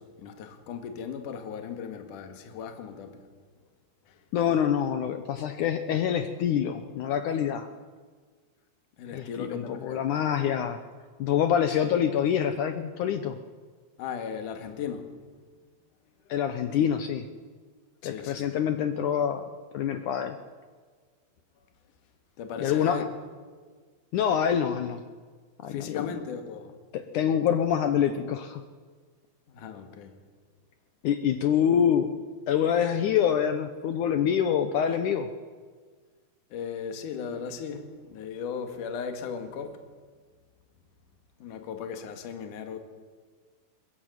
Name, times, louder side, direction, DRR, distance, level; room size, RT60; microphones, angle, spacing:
voice 1, 0.0-3.2 9.0-10.0 14.0-15.1 18.0-18.5 22.4-23.1 25.7-26.7 29.5-30.2 36.5-39.8 41.4-42.8, left 6 dB, 55° left, 3.1 m, -37 dB
voice 2, 4.3-7.7 9.1-10.8 11.2-13.4 16.3-17.3 18.0-19.5 19.7-20.4 22.6-23.1 24.1-25.0 25.6-26.1 26.9-28.6 31.0-32.1 32.5-35.3, left 8 dB, 80° left, 1.8 m, -26 dB
22.0 x 21.0 x 9.3 m
omnidirectional pair, 4.8 m